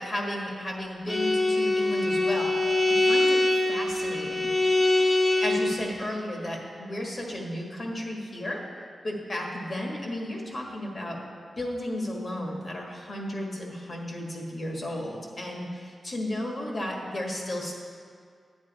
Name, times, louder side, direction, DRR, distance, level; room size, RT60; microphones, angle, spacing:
voice 1, 0.0-3.4 3.7-4.5 5.2-8.6 9.0-11.2 11.5-17.7, left 1 dB, 40° left, 0 dB, 1.6 m, -33 dB
Bowed string instrument, 1.1-5.8, left 2 dB, 25° left, 0.9 m, -23 dB
8.9 x 8.8 x 4.2 m, 2.1 s
wide cardioid pair, 110°, 0 cm